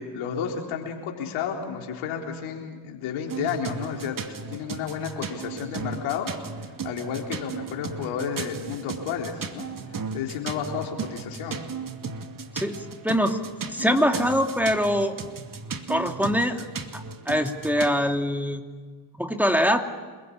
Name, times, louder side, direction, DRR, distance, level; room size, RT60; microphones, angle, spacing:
voice 1, 0.0-4.2 4.5-6.3 6.8-9.7 10.1-11.6, left 7 dB, 75° left, 1 dB, 4.1 m, -31 dB
sound 1, 3.3-18.0, right 5 dB, 40° right, 2.4 m, -36 dB
voice 2, 12.5-13.4 13.7-15.1 15.9-16.6 16.9-18.6 19.2-19.9, equal, 5° right, 4 dB, 2.6 m, -23 dB
27.5 x 22.0 x 8.7 m, 1.5 s
hypercardioid pair, 45°, 49 cm